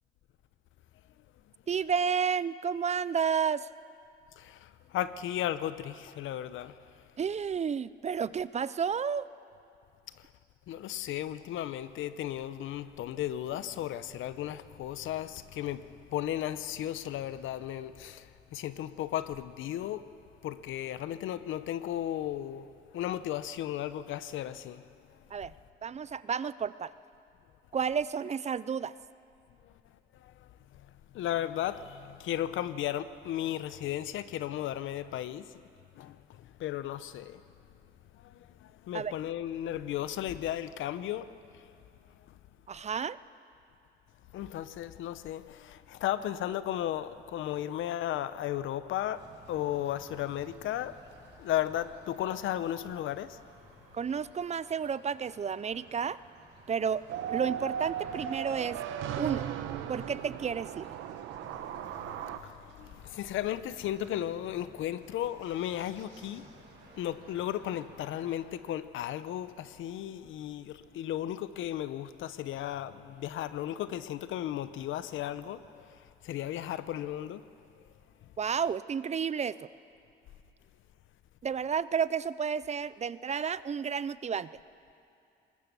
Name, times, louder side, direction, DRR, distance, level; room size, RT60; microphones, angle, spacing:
voice 1, 1.7-3.7 7.2-9.3 25.3-25.5 25.8-26.9 27.7-28.9 38.9-39.1 42.7-43.2 53.9-56.2 56.7-57.0 57.3-58.8 59.2-59.5 59.9-60.9 78.4-79.7 81.4-84.5, right 7 dB, 35° right, 0.5 m, -31 dB
voice 2, 4.4-6.8 10.7-20.1 20.4-24.8 30.2-30.5 30.8-30.9 31.1-35.5 36.0-37.4 38.2-41.6 44.3-51.0 51.4-53.4 61.4-66.5 67.0-77.4, left 12 dB, 80° left, 0.8 m, -35 dB
sound 1, 49.0-68.4, right 4 dB, 60° right, 5.1 m, -56 dB
sound 2, 57.1-62.4, right 9 dB, 90° right, 1.0 m, -36 dB
20.0 x 20.0 x 6.9 m
cardioid pair, 90°, 20 cm